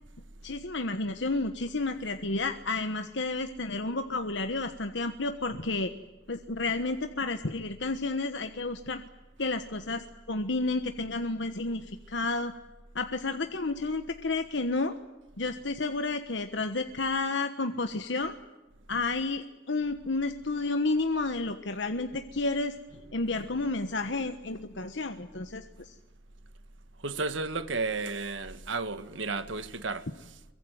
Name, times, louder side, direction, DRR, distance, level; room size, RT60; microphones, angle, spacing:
voice 1, 0.4-5.9 6.3-9.0 9.4-12.5 12.9-14.9 15.4-18.4 18.9-22.8 23.1-26.0, left 3 dB, 65° left, 1.3 m, -31 dB
voice 2, 27.0-30.1, right 3 dB, 75° right, 1.7 m, -33 dB
23.5 x 23.5 x 9.3 m
head